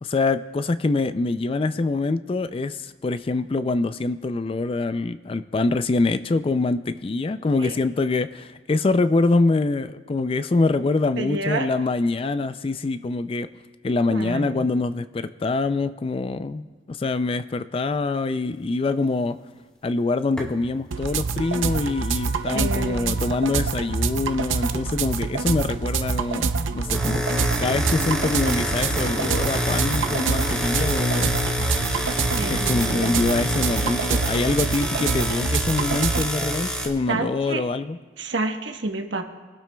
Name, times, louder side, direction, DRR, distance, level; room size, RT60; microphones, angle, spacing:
voice 1, 0.0-13.5 13.8-19.4 19.8-27.3 27.6-31.3 32.5-38.0, left 3 dB, 30° left, 12 dB, 0.3 m, -24 dB
voice 2, 11.2-11.7 14.1-14.7 22.5-23.2 32.3-33.1 37.1-37.6 38.2-39.2, right 2 dB, 70° right, 4 dB, 1.1 m, -29 dB
sound 1, 20.4-20.6 26.7-36.9, equal, 5° left, 1.4 m, -27 dB
sound 2, 20.9-36.3, right 4 dB, 85° right, 0.6 m, -26 dB
22.0 x 12.0 x 2.3 m, 1.3 s
head